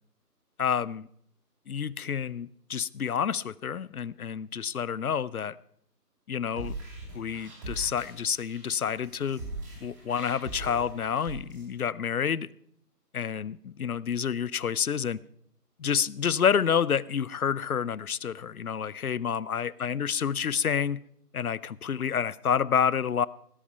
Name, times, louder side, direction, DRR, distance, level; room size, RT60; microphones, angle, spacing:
voice 1, 0.6-1.1 1.7-5.6 6.3-6.7 7.1-9.4 9.8-12.5 13.1-15.2 15.8-21.0 21.3-23.3, left 7 dB, 65° left, 22 dB, 0.6 m, -29 dB
sound 1, 6.4-11.6, right 2 dB, 10° right, 2.8 m, -41 dB
17.5 x 8.8 x 5.5 m, 0.68 s
figure-of-eight pair, 170°, 48 cm